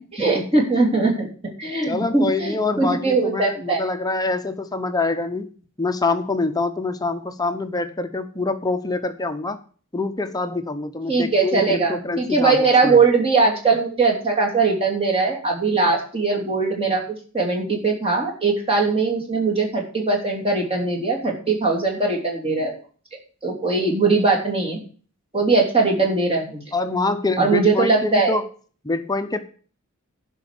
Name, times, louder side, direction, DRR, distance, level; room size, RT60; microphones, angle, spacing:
voice 1, 0.1-1.3 1.6-3.9 11.1-22.8 23.4-24.8 25.3-26.6 27.4-28.4, right 3 dB, 25° right, -1 dB, 3.1 m, -20 dB
voice 2, 1.9-5.5 5.8-9.6 9.9-13.0 26.7-28.5 28.8-29.4, left 3 dB, 15° left, 8 dB, 0.8 m, -25 dB
11.5 x 5.4 x 8.2 m, 0.41 s
head